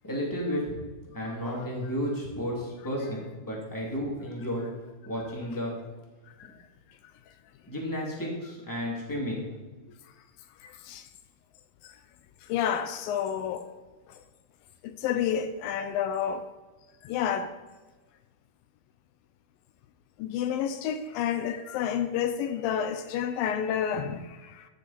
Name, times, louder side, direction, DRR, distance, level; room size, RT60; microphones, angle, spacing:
voice 1, 0.0-0.7 1.1-4.6 5.0-5.7 7.7-9.4, equal, 5° left, 1.9 m, -32 dB
voice 2, 10.6-11.1 12.5-13.7 14.8-16.5 17.0-17.5 20.2-24.7, left 8 dB, 80° left, 2.2 m, -30 dB
14.0 x 7.1 x 4.4 m
omnidirectional pair, 4.5 m